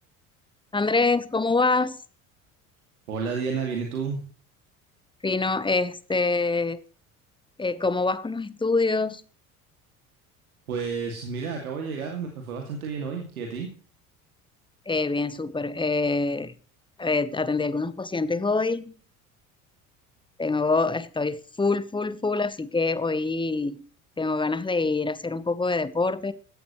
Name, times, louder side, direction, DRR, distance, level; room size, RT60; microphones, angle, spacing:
voice 1, 0.7-2.0 5.2-6.8 7.6-9.2 14.9-16.5 17.0-18.9 20.4-23.8 24.2-26.3, left 3 dB, 10° left, 16 dB, 1.1 m, -25 dB
voice 2, 3.1-4.2 10.7-13.7, right 5 dB, 75° right, 2 dB, 2.5 m, -31 dB
14.5 x 13.0 x 3.1 m, 0.41 s
figure-of-eight pair, 60°, 43 cm